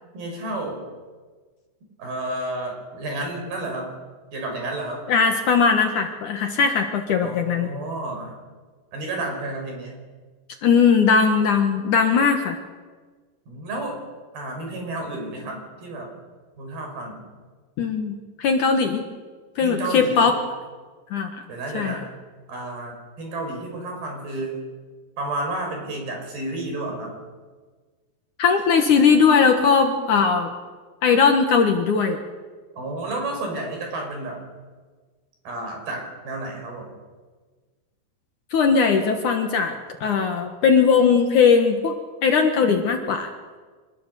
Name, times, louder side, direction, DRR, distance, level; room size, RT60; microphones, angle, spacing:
voice 1, 0.1-0.8 2.0-3.9 4.3-5.1 7.2-8.4 8.9-10.0 13.5-14.0 14.3-16.1 16.5-17.3 19.6-20.3 21.5-22.1 22.5-24.6 25.2-27.2 32.8-34.4 35.4-37.0, right 2 dB, 65° right, 2 dB, 7.7 m, -31 dB
voice 2, 5.1-7.7 10.6-12.6 17.8-19.0 19.6-20.4 21.1-21.4 21.7-21.9 28.4-30.5 31.0-32.2 38.5-41.9 42.2-43.3, left 5 dB, 60° left, 5 dB, 2.5 m, -19 dB
26.5 x 20.5 x 7.0 m, 1.4 s
omnidirectional pair, 4.7 m